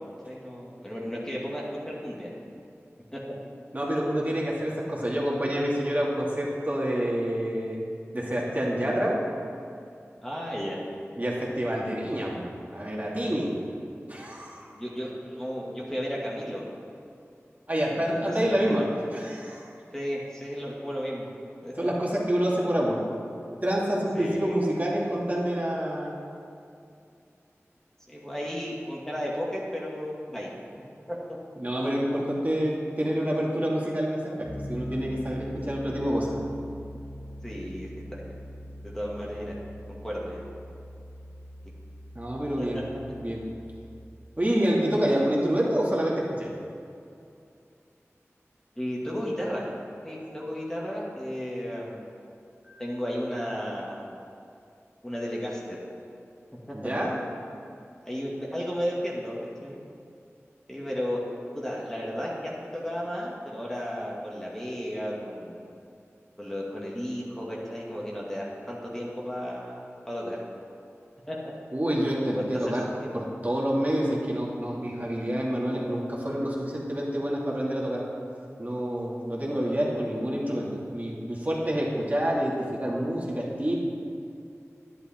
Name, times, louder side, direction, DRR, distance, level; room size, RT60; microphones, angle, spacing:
voice 1, 0.3-2.3 3.1-3.2 10.2-10.8 14.7-16.6 17.9-19.0 19.9-21.3 21.6-21.9 24.1-24.5 28.1-30.5 31.1-31.4 37.4-38.3 38.8-39.6 39.9-40.4 42.6-42.8 48.8-49.7 50.0-52.0 52.8-54.0 55.0-55.8 56.7-56.8 58.1-59.8 60.7-61.2 61.5-65.7 66.4-70.4 71.3-71.4 72.3-73.1, equal, 10° left, -5 dB, 2.2 m, -34 dB
voice 2, 3.7-7.9 8.1-9.2 11.2-13.6 14.1-14.7 17.7-18.9 19.1-19.7 21.8-23.0 23.6-26.1 31.6-36.3 42.1-42.8 43.2-43.5 44.4-46.5 50.2-50.3 52.6-52.8 56.7-57.1 71.7-72.9 73.1-78.0 78.6-83.7, equal, 35° right, -5 dB, 2.5 m, -27 dB
Piano, 34.5-44.1, equal, 65° left, 1.5 m, -41 dB
10.5 x 10.5 x 4.5 m, 2.5 s
wide cardioid pair, 45°, 5 cm